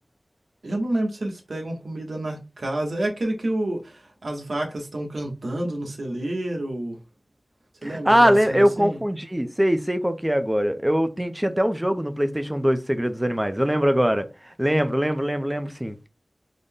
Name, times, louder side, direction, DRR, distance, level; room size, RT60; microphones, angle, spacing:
voice 1, 0.6-7.0 7.8-9.0, right 1 dB, 85° right, 1.0 m, -29 dB
voice 2, 7.8-14.3 14.6-16.0, equal, 15° right, 0.5 m, -22 dB
3.9 x 2.1 x 3.5 m
wide cardioid pair, 65°, 0 cm